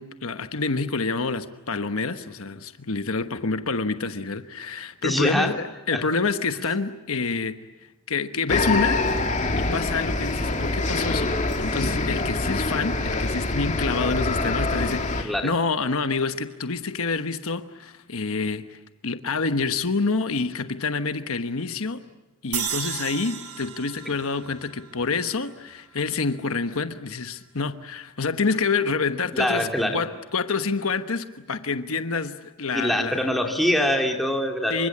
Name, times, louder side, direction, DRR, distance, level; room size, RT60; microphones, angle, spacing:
voice 1, 0.0-9.0 9.6-11.3 11.6-22.0 22.4-29.7 29.9-33.3 34.7-34.9, left 4 dB, 70° left, 9 dB, 1.2 m, -27 dB
voice 2, 5.0-5.5 5.9-6.0 14.3-14.6 15.2-15.5 29.3-30.0 32.7-34.9, equal, ahead, 1 dB, 3.0 m, -24 dB
sound 1, 8.5-15.2, left 2 dB, 35° left, 2.4 m, -25 dB
sound 2, 22.5-25.8, right 9 dB, 75° right, 2.6 m, -34 dB
28.0 x 25.0 x 8.6 m, 1.1 s
head